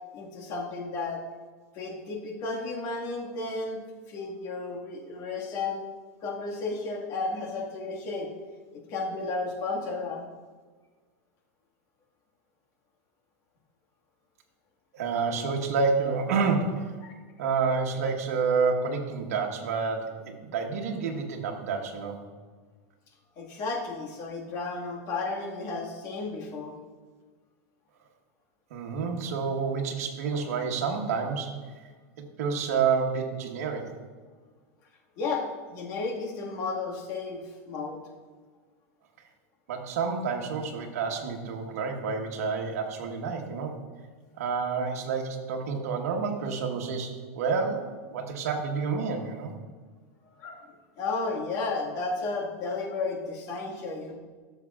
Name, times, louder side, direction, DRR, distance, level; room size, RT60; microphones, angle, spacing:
voice 1, 0.1-1.2 1.7-3.8 4.1-5.8 6.2-8.3 8.7-10.3 17.0-17.1 23.4-26.7 35.2-38.0 50.4-50.6 51.0-54.2, left 3 dB, 45° left, -1 dB, 1.8 m, -33 dB
voice 2, 14.9-16.9 17.4-22.2 28.7-31.8 32.2-33.9 39.7-43.8 44.4-49.5, right 5 dB, 80° right, 2 dB, 1.3 m, -29 dB
13.5 x 6.7 x 2.4 m, 1.5 s
supercardioid pair, 135°, 8 cm